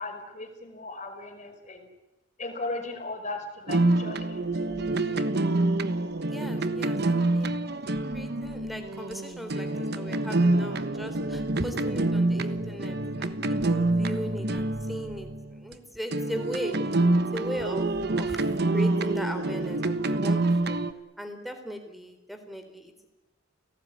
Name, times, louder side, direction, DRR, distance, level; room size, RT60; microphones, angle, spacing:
voice 1, 0.0-1.9 2.4-4.8 5.1-5.3, left 2 dB, 40° left, 4 dB, 5.1 m, -37 dB
sound 1, 3.7-15.7 16.1-20.9, right 2 dB, 55° right, 1.3 m, -27 dB
voice 2, 6.2-7.5 8.1-16.8 17.3-18.5 18.7-20.8 21.2-23.1, equal, ahead, 7 dB, 3.7 m, -38 dB
30.0 x 18.0 x 9.8 m, 1.0 s
head